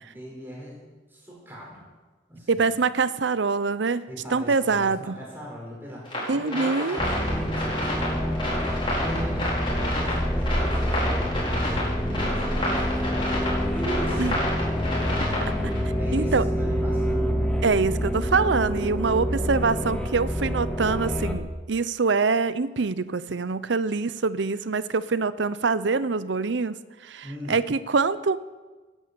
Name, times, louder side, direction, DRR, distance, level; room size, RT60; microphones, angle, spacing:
voice 1, 0.1-0.8 1.1-1.8 2.3-2.7 4.1-8.5 8.8-13.4 13.7-15.6 15.9-17.5 19.0-19.5 27.2-27.6, equal, 10° right, -4 dB, 5.4 m, -39 dB
voice 2, 2.5-4.1 4.3-5.2 6.3-7.0 14.2-14.3 15.6-15.7 16.1-16.4 17.6-26.8 27.0-28.4, right 4 dB, 75° right, 15 dB, 0.6 m, -24 dB
sound 1, 6.0-15.8, left 1 dB, 30° left, 6.0 m, -30 dB
sound 2, 7.0-21.4, equal, 5° left, 1.2 m, -27 dB
13.0 x 10.5 x 8.5 m, 1.3 s
head